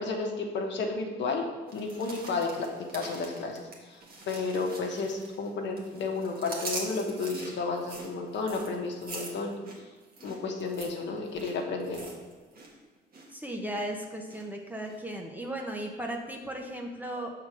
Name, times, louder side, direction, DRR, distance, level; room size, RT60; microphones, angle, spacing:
voice 1, 0.0-1.5 1.7-4.0 4.3-9.6 10.2-12.1, left 3 dB, 65° left, 1 dB, 1.1 m, -32 dB
sound 1, 1.7-5.5 5.8-12.7 13.0-13.3 13.7-14.4 14.9-15.0, right 2 dB, 50° right, 1.6 m, -43 dB
voice 2, 13.3-17.3, right 1 dB, 10° right, 1 dB, 0.9 m, -36 dB
6.1 x 3.9 x 6.1 m, 1.4 s
cardioid pair, 90°, 20 cm